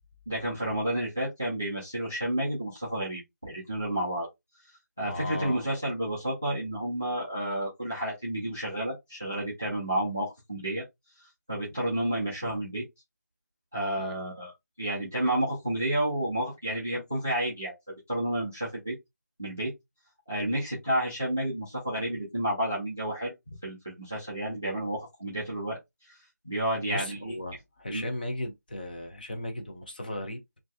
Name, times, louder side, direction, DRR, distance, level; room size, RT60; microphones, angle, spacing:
voice 1, 0.3-4.3 5.0-10.8 11.5-12.8 13.7-14.5 14.8-17.7 18.1-18.9 19.4-19.7 20.3-25.8 26.1-26.2 26.4-27.3 27.9-28.0, right 1 dB, 10° right, 0.3 m, -30 dB
voice 2, 5.1-5.6 14.0-14.2 26.9-30.4, left 1 dB, 30° left, 0.6 m, -36 dB
3.0 x 2.6 x 3.3 m
figure-of-eight pair, 175°, 9 cm